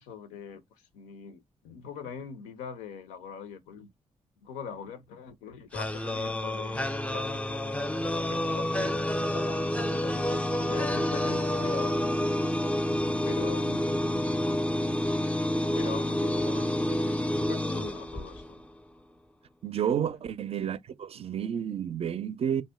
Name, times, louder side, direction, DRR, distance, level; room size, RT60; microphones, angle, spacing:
voice 1, 0.0-3.9 4.4-7.8 8.3-9.1 9.3-12.3 13.3-13.8 15.7-18.6 20.0-20.1, left 7 dB, 90° left, 0.5 m, -42 dB
sound 1, 5.7-18.7, left 1 dB, 10° left, 0.4 m, -29 dB
voice 2, 19.6-22.6, right 9 dB, 50° right, 0.4 m, -30 dB
2.6 x 2.1 x 3.4 m
hypercardioid pair, 45°, 13 cm